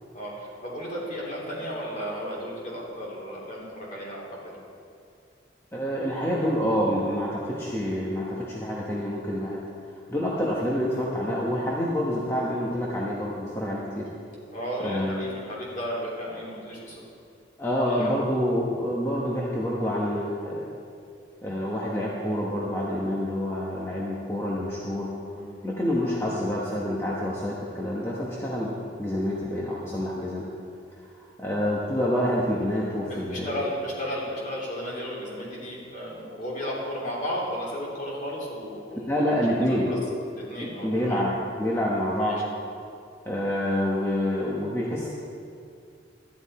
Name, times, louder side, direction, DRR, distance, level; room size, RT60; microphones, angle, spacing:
voice 1, 0.1-4.5 14.5-17.0 17.9-18.2 25.3-25.5 33.1-40.0 40.3-41.2 42.2-42.4, equal, 45° left, -5 dB, 3.1 m, -34 dB
voice 2, 5.7-9.6 9.9-14.1 14.8-15.3 17.6-20.6 21.4-25.1 25.6-28.7 29.0-30.4 31.1-33.6 38.9-39.9 40.8-41.3 41.6-42.4 43.3-45.1, equal, 15° left, -5 dB, 1.1 m, -27 dB
12.5 x 10.5 x 4.3 m, 2.4 s
head